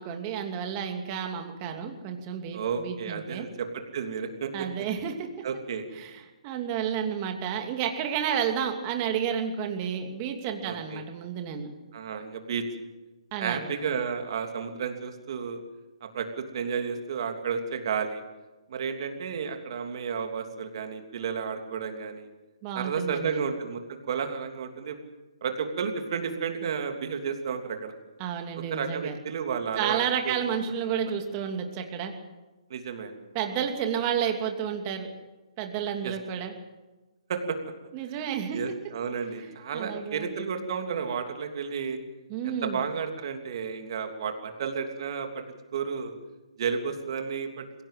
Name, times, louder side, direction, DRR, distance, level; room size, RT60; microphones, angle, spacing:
voice 1, 0.0-3.5 4.5-5.3 6.0-11.7 13.3-13.7 22.6-23.4 28.2-29.1 29.7-32.1 33.3-35.1 35.6-36.5 37.9-38.6 39.7-40.3 42.3-42.8, right 8 dB, 30° right, 4 dB, 2.8 m, -31 dB
voice 2, 2.5-3.7 3.9-4.5 5.4-5.8 10.6-11.0 11.9-12.6 13.4-15.6 16.0-18.2 18.7-22.3 22.7-25.0 25.4-27.9 28.7-30.4 32.7-33.2 36.0-36.1 37.3-37.6 38.1-38.2 38.5-42.0 42.4-45.4 45.7-46.1 46.6-47.6, right 6 dB, 50° right, 5 dB, 3.1 m, -32 dB
22.0 x 17.0 x 7.6 m, 1.2 s
hypercardioid pair, 145°, 3 cm